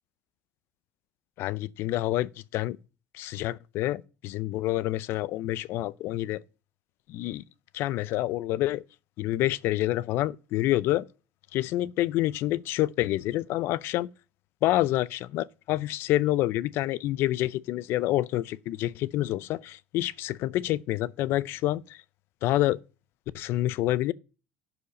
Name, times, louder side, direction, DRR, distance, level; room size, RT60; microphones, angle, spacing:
voice 1, 1.4-2.8 3.1-6.4 7.1-7.4 7.7-8.8 9.2-11.0 11.5-14.1 14.6-22.0 22.4-22.8 23.3-24.1, left 15 dB, 60° left, 0.5 m, -27 dB
11.5 x 4.9 x 5.2 m
cardioid pair, 140°, 5 cm